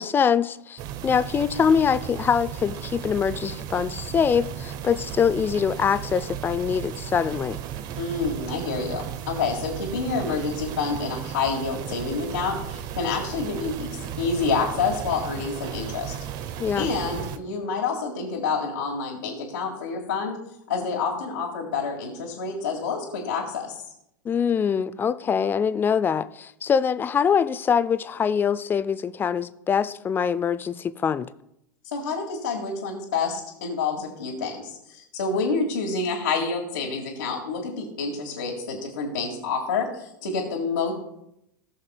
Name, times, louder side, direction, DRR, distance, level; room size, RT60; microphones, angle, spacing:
voice 1, 0.0-7.6 16.6-16.9 24.2-31.3, left 7 dB, 20° left, 14 dB, 0.5 m, -24 dB
sound 1, 0.8-17.4, right 10 dB, 40° right, 0.7 m, -35 dB
voice 2, 8.0-13.9 14.2-16.2 16.8-20.4 20.7-23.8 31.9-40.9, left 4 dB, 65° left, -3 dB, 1.9 m, -28 dB
19.0 x 6.5 x 2.2 m, 0.80 s
figure-of-eight pair, 90°, 11 cm